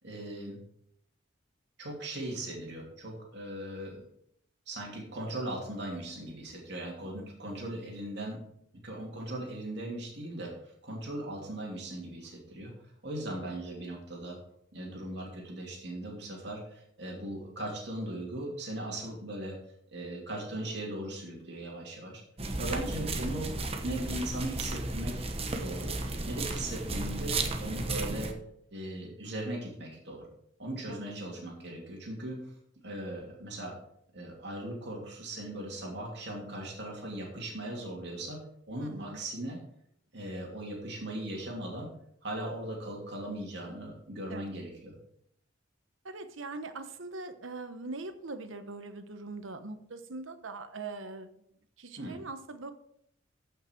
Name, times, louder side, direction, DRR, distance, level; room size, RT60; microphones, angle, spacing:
voice 1, 0.0-0.6 1.8-4.0 4.7-8.4 8.8-12.7 13.0-14.4 14.7-19.6 19.9-22.2 22.6-23.5 23.8-25.3 25.5-25.9 26.3-28.3 28.7-30.2 30.6-32.4 32.8-33.7 34.1-38.4 38.7-39.6 40.1-41.9 42.2-44.9 52.0-52.2, right 1 dB, 60° right, -2 dB, 2.9 m, -38 dB
sound 1, 22.4-28.3, right 2 dB, 30° right, 1.0 m, -34 dB
voice 2, 38.8-39.2 44.3-44.4 46.0-51.3 51.8-52.7, right 3 dB, 85° right, 9 dB, 1.1 m, -42 dB
14.5 x 5.8 x 4.5 m, 0.72 s
head